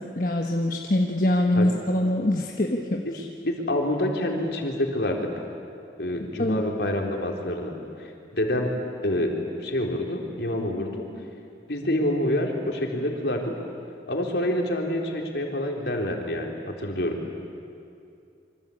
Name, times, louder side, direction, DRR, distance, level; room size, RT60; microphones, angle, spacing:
voice 1, 0.2-3.2 6.4-6.6, left 1 dB, 50° left, 1 dB, 1.3 m, -24 dB
voice 2, 3.4-5.2 6.0-7.7 8.0-8.7 9.0-9.3 9.6-11.1 11.7-13.5 14.1-17.2, left 1 dB, 70° left, 1 dB, 3.9 m, -27 dB
27.0 x 25.0 x 8.6 m, 2.5 s
head